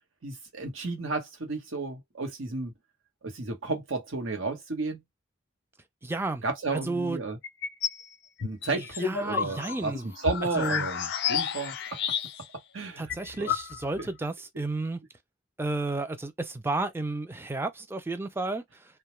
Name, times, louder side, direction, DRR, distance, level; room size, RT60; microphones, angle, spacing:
voice 1, 0.2-2.7 3.2-5.0 6.4-7.4 8.4-12.0 12.7-13.0 13.3-13.5 14.0-14.1, right 3 dB, 80° right, 1.0 m, -33 dB
voice 2, 6.0-6.4 6.7-7.2 9.0-10.1 10.6-10.9 13.0-15.0 15.6-18.6, right 2 dB, 10° right, 0.3 m, -32 dB
sound 1, 7.4-8.0 8.4-12.6 12.8-12.9 13.1-14.1, left 7 dB, 60° left, 0.4 m, -31 dB
2.2 x 2.1 x 3.0 m
head